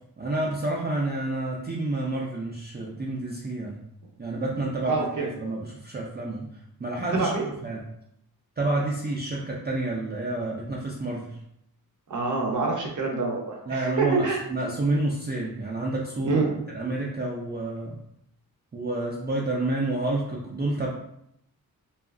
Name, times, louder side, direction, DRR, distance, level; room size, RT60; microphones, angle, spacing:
voice 1, 0.2-3.8 4.2-6.5 6.8-7.3 7.6-7.8 8.6-11.4 13.7-16.4 16.7-18.0 18.7-20.9, right 2 dB, 30° right, -4 dB, 0.3 m, -29 dB
voice 2, 4.8-5.3 7.0-7.5 12.1-14.4 16.2-16.5, right 3 dB, 55° right, -1 dB, 0.7 m, -26 dB
2.7 x 2.4 x 2.4 m, 0.76 s
wide cardioid pair, 115°, 37 cm